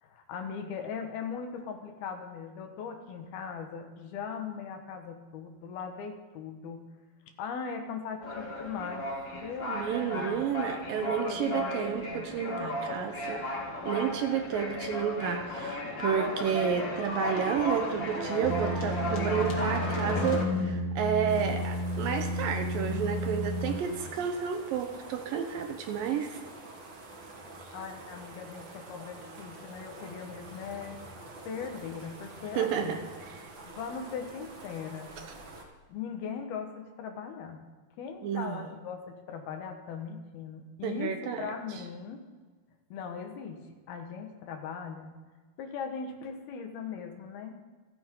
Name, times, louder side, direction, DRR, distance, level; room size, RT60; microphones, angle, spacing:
voice 1, 0.0-6.8 7.4-10.5 11.0-12.8 23.7-23.8 24.1-24.3 27.7-31.0 31.4-33.0 33.6-35.1 35.9-37.6 38.0-42.2 42.9-43.6 43.9-45.1 45.6-47.5, left 6 dB, 75° left, 4 dB, 3.3 m, -39 dB
sound 1, 8.2-20.4, left 1 dB, 35° left, 2.0 m, -35 dB
voice 2, 9.7-13.4 13.8-26.4 32.6-33.0 33.3-33.4 35.2-35.3 38.2-38.6 40.8-41.5, right 8 dB, 70° right, 6 dB, 2.4 m, -31 dB
sound 2, 18.4-23.8, left 1 dB, 20° left, 3.7 m, -32 dB
Moutain Stream, 21.3-35.6, right 2 dB, 45° right, 1.7 m, -47 dB
28.0 x 9.6 x 3.8 m, 1.3 s
omnidirectional pair, 4.6 m